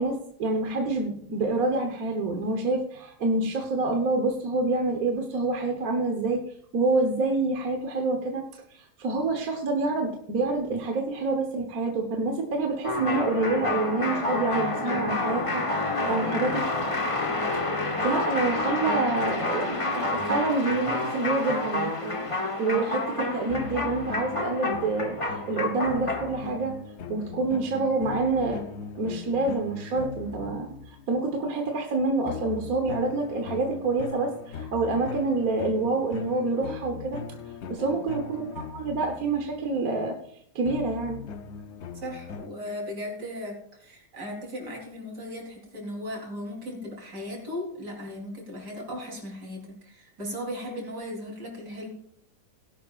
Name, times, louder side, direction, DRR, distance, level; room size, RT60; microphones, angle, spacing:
voice 1, 0.0-6.4 6.7-8.4 8.7-15.6 16.1-16.6 18.0-22.3 22.6-26.8 27.1-37.2 37.7-38.4 38.7-40.2 40.5-41.2, right 3 dB, 60° right, 3 dB, 1.6 m, -27 dB
sound 1, 12.8-26.4, left 2 dB, 25° left, 0.9 m, -29 dB
sound 2, 23.5-31.1 32.3-39.8 40.6-42.5, left 6 dB, 55° left, 0.8 m, -40 dB
voice 2, 42.0-51.9, left 1 dB, 85° right, 0 dB, 4.2 m, -37 dB
17.5 x 11.0 x 2.5 m, 0.70 s
omnidirectional pair, 1.7 m